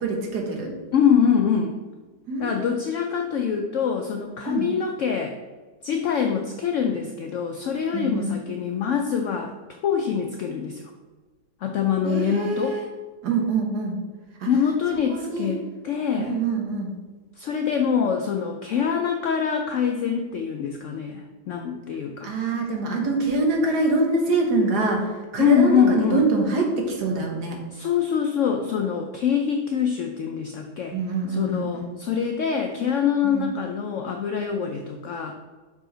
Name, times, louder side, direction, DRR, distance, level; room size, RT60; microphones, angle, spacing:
voice 1, 0.0-0.7 2.3-2.6 4.5-4.7 7.9-8.3 12.0-12.9 13.2-14.0 14.4-14.5 15.1-15.5 16.2-16.9 22.2-27.6 30.9-31.9 33.2-33.5, right 3 dB, 70° right, 1 dB, 1.7 m, -25 dB
voice 2, 0.9-1.7 2.4-5.4 5.8-10.8 11.6-12.8 14.5-16.4 17.4-22.3 25.4-26.2 27.7-31.0 31.3-35.3, left 7 dB, 75° left, 4 dB, 0.7 m, -24 dB
5.7 x 4.9 x 3.9 m, 1.3 s
omnidirectional pair, 1.8 m